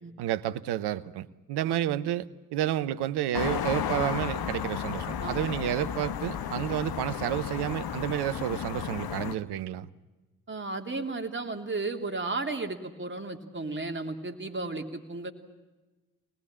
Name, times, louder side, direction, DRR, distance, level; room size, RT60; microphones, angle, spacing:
voice 1, 0.2-9.9, right 12 dB, 65° right, 1.1 m, -30 dB
sound 1, 3.3-9.3, left 9 dB, 60° left, 1.3 m, -33 dB
voice 2, 5.2-5.5 10.5-15.3, right 3 dB, 25° right, 3.2 m, -34 dB
25.5 x 19.5 x 8.8 m
hypercardioid pair, 40°, 42 cm